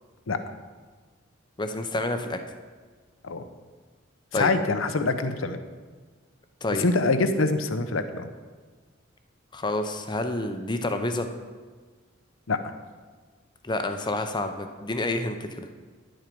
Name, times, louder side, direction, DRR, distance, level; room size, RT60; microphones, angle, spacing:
voice 1, 1.6-2.4 4.3-4.5 6.6-6.9 9.5-11.3 13.6-15.7, left 2 dB, 20° left, 7 dB, 0.6 m, -29 dB
voice 2, 4.3-5.6 6.8-8.3 12.5-12.6, left 3 dB, 85° left, 9 dB, 0.7 m, -25 dB
10.5 x 7.6 x 5.2 m, 1.5 s
head